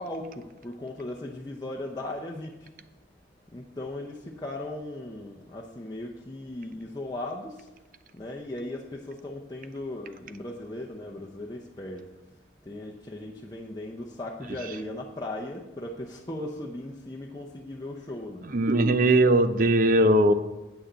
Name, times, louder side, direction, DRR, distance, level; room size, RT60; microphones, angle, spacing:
voice 1, 0.0-2.7 3.5-7.7 8.1-18.6, left 1 dB, 20° left, -2 dB, 0.7 m, -38 dB
voice 2, 18.5-20.3, right 1 dB, 45° right, 10 dB, 0.6 m, -20 dB
8.0 x 6.3 x 8.1 m, 1.0 s
head